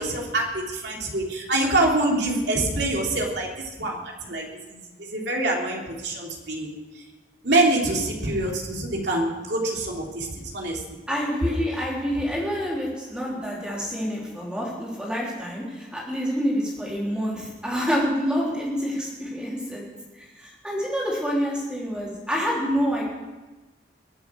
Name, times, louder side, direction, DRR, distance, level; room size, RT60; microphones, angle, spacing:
voice 1, 0.0-7.0 7.4-11.0, right 2 dB, 70° right, -1 dB, 3.1 m, -25 dB
voice 2, 11.1-19.8 20.1-23.0, equal, 5° right, -4 dB, 3.8 m, -27 dB
22.0 x 7.8 x 6.3 m, 1.2 s
head